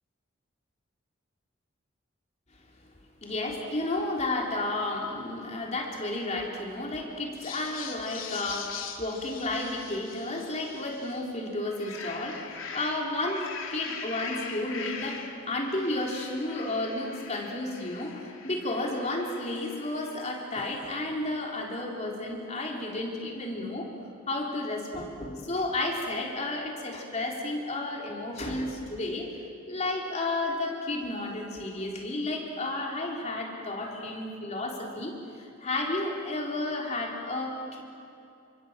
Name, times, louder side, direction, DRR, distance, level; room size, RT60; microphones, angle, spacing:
voice 1, 3.2-23.9 24.3-29.4 29.7-37.8, left 2 dB, 35° left, -1 dB, 3.6 m, -32 dB
sound 1, 7.3-11.2 11.6-20.3, left 6 dB, 80° left, 2.9 m, -42 dB
28.5 x 26.5 x 7.5 m, 2.6 s
head